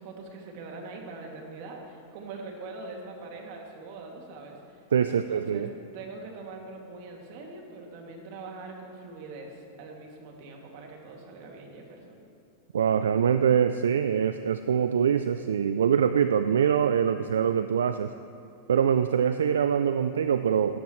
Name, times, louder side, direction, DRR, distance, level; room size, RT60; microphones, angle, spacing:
voice 1, 0.0-4.8 5.1-5.7 5.9-12.2, right 3 dB, 55° right, 1 dB, 2.3 m, -43 dB
voice 2, 4.9-5.7 12.7-18.1 18.7-20.8, right 8 dB, 85° right, 10 dB, 0.3 m, -24 dB
16.5 x 12.0 x 3.2 m, 2.5 s
hypercardioid pair, 110°, 0 cm